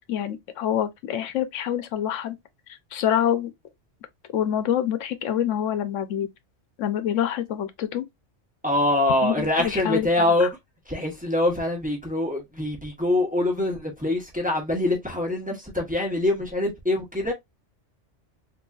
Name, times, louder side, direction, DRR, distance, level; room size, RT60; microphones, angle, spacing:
voice 1, 0.1-2.4 2.9-3.5 4.3-6.3 6.8-8.0 9.2-10.1, left 10 dB, 90° left, 1.0 m, -26 dB
voice 2, 8.6-10.5 10.9-17.3, left 1 dB, 5° right, 1.0 m, -24 dB
3.9 x 2.9 x 2.3 m
omnidirectional pair, 1.2 m